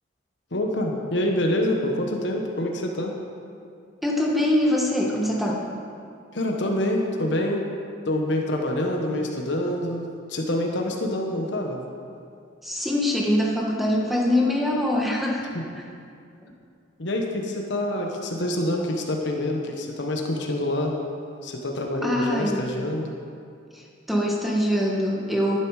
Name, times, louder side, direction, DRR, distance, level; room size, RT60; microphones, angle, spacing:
voice 1, 0.5-3.1 6.3-7.6 8.0-11.8 15.5-15.6 17.0-20.9 21.4-23.2, left 1 dB, 70° left, 1 dB, 1.2 m, -26 dB
voice 2, 4.0-5.6 12.6-15.5 22.0-22.7 23.7-25.6, left 1 dB, ahead, -2 dB, 1.3 m, -23 dB
12.0 x 10.5 x 4.8 m, 2.4 s
head